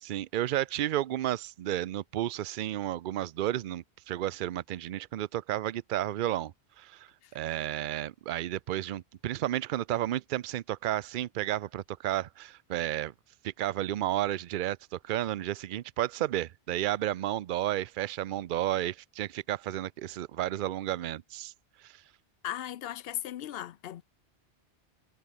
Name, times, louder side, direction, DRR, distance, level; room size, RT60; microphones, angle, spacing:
voice 1, 0.0-6.5 6.8-13.1 13.4-21.5 21.8-21.9, right 13 dB, 60° right, 0.6 m, -32 dB
voice 2, 22.4-24.0, left 11 dB, 65° left, 0.8 m, -37 dB
omnidirectional pair, 1.1 m